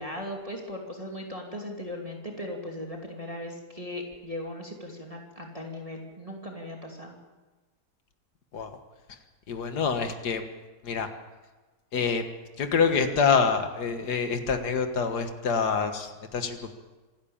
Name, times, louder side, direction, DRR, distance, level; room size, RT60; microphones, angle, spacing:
voice 1, 0.0-7.2, left 1 dB, 20° right, 0 dB, 2.7 m, -38 dB
voice 2, 9.5-10.4 10.8-11.1 11.9-12.2 12.6-16.7, left 5 dB, 85° left, 7 dB, 2.1 m, -26 dB
26.5 x 12.0 x 8.8 m, 1.3 s
omnidirectional pair, 1.7 m